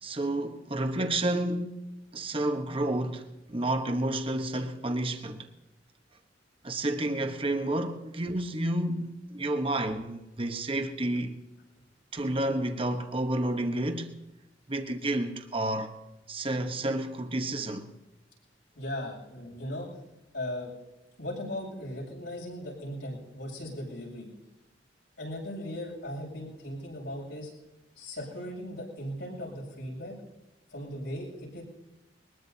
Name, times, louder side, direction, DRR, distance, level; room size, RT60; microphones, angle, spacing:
voice 1, 0.0-5.5 6.6-11.4 12.1-14.1 14.7-15.9 16.3-17.9, right 1 dB, 30° right, 1.2 m, -30 dB
voice 2, 18.7-20.0 20.3-20.7 21.2-24.3 25.2-27.5 27.9-30.2 30.7-31.6, left 1 dB, 80° left, 7.8 m, -38 dB
21.5 x 21.0 x 2.8 m
head